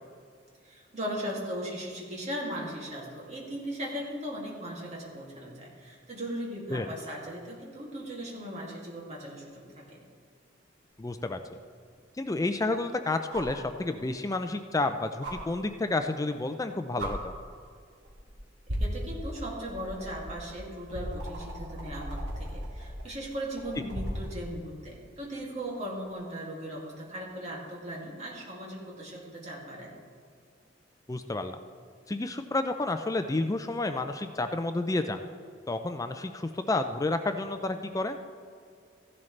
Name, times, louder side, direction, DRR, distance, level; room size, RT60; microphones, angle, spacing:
voice 1, 0.6-10.0 18.8-29.9, equal, 35° right, -3 dB, 2.4 m, -38 dB
voice 2, 11.0-11.4 12.2-17.3 31.1-31.6 32.1-35.2 35.7-38.2, left 2 dB, 20° left, 8 dB, 0.4 m, -30 dB
sound 1, 11.1-11.2 13.3-13.6 15.2-15.4 16.5-16.6 17.0-17.1 18.0-18.3 18.7-24.3 26.0-26.1, equal, 60° right, 2.2 m, -37 dB
14.5 x 11.0 x 3.3 m, 2.3 s
head